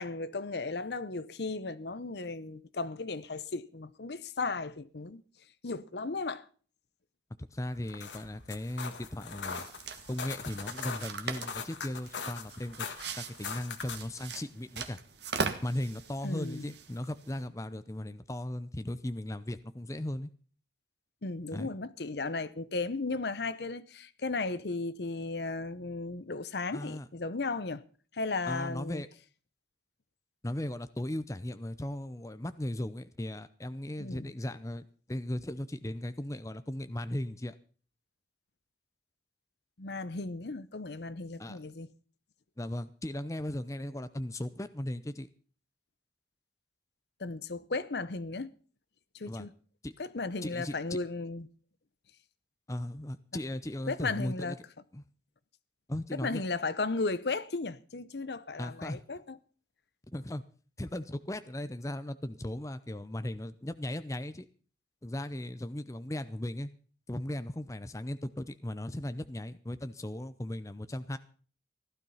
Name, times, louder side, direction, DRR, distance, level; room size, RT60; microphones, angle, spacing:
voice 1, 0.0-5.2 5.6-6.4 16.2-16.7 21.2-27.8 28.1-29.0 34.0-34.3 39.8-41.9 47.2-48.5 49.1-49.5 50.0-51.5 53.9-54.6 56.1-59.4, left 3 dB, 70° left, 0.8 m, -35 dB
voice 2, 7.4-9.6 10.1-12.9 13.2-15.0 15.6-20.3 21.5-21.7 26.7-27.1 28.5-29.1 30.4-37.5 41.4-41.6 42.6-45.3 49.3-49.5 49.8-49.9 50.4-51.0 52.7-54.6 54.9-55.0 55.9-56.4 58.6-59.0 60.1-60.4 60.8-64.5 65.0-66.7 67.1-71.2, left 1 dB, 20° left, 0.6 m, -37 dB
sound 1, 7.7-14.2, left 5 dB, 85° left, 1.6 m, -41 dB
sound 2, 9.5-17.4, right 4 dB, 70° right, 1.6 m, -41 dB
15.5 x 12.0 x 5.6 m
head